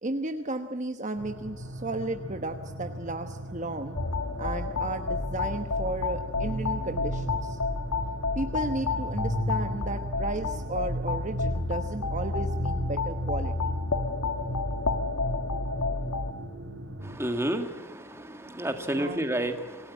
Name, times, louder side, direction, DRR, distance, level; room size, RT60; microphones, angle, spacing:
voice 1, 0.0-4.0 4.4-7.6 8.3-13.7 19.0-19.3, right 2 dB, 35° right, 6 dB, 1.1 m, -34 dB
sound 1, 1.2-17.2, right 1 dB, 65° right, 4.3 m, -38 dB
sound 2, 3.9-16.3, left 3 dB, 70° left, 1.5 m, -30 dB
voice 2, 17.0-19.9, right 1 dB, 10° right, 6 dB, 1.8 m, -31 dB
27.0 x 17.0 x 8.4 m, 1.4 s
head